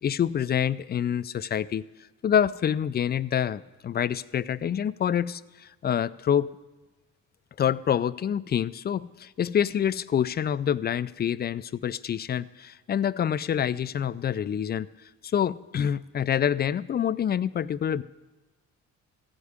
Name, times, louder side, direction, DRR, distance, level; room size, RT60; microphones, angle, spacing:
voice 1, 0.0-1.8 2.2-6.5 7.6-14.9 15.3-18.0, left 9 dB, 35° left, 16 dB, 0.4 m, -26 dB
15.0 x 5.0 x 9.6 m, 1.2 s
cardioid pair, 90°, 30 cm